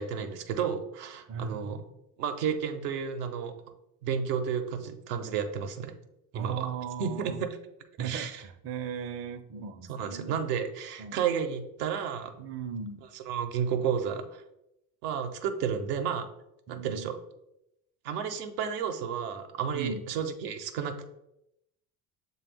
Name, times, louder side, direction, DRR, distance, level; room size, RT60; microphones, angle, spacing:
voice 1, 0.0-1.8 2.2-3.5 4.0-5.9 6.3-6.7 7.0-7.3 8.0-8.4 9.9-12.3 13.1-14.4 15.0-16.3 16.7-17.2 18.0-21.1, right 7 dB, 80° right, 5 dB, 0.6 m, -32 dB
voice 2, 1.3-1.9 6.3-7.4 8.0-10.4 11.0-11.2 12.4-13.1 16.7-17.1 19.7-20.0, right 7 dB, 30° right, 7 dB, 0.5 m, -37 dB
6.7 x 2.2 x 3.4 m, 0.83 s
hypercardioid pair, 65°, 46 cm